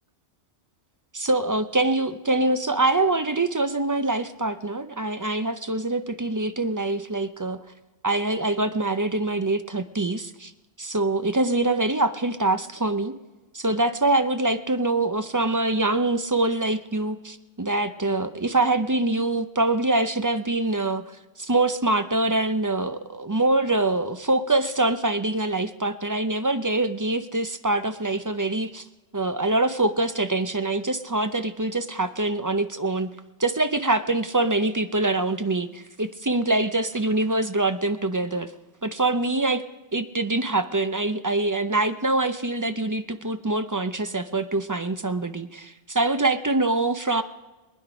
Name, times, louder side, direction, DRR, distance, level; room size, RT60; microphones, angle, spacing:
voice 1, 1.2-7.6 8.0-10.5 10.8-13.1 13.5-21.0 21.4-28.8 29.1-33.1 33.4-38.5 38.8-39.6 39.9-47.2, right 2 dB, 25° right, 10 dB, 0.5 m, -24 dB
22.5 x 10.0 x 5.0 m, 1.2 s
omnidirectional pair, 1.2 m